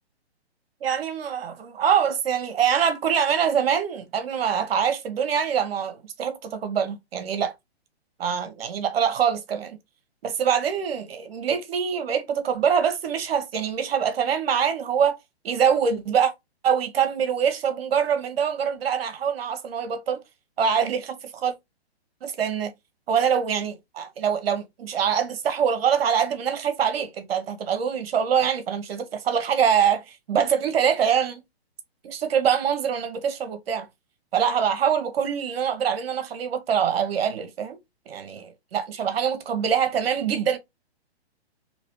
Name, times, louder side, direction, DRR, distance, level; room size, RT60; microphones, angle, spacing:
voice 1, 0.8-7.5 8.2-9.8 10.2-15.2 15.4-16.3 16.6-20.2 20.6-21.5 22.2-22.7 23.1-31.4 32.0-33.9 34.3-37.8 38.1-40.6, right 7 dB, 65° right, 1.0 m, -24 dB
3.0 x 2.9 x 3.0 m
hypercardioid pair, 140°, 32 cm